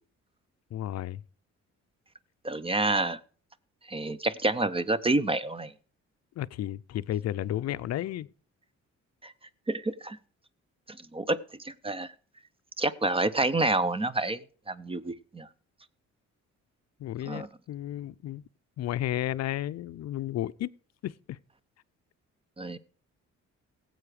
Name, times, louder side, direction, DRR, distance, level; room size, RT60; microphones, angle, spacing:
voice 1, 0.7-1.2 6.4-8.3 17.0-18.4 18.8-20.7 21.0-21.4, left 13 dB, 60° left, 0.5 m, -33 dB
voice 2, 2.4-3.2 3.9-5.7 9.2-9.3 9.7-10.2 10.9-11.4 11.6-12.1 12.8-14.4 14.7-15.5 17.3-17.5 22.6-22.8, right 2 dB, 20° right, 0.6 m, -28 dB
17.0 x 7.8 x 4.9 m
cardioid pair, 90°, 30 cm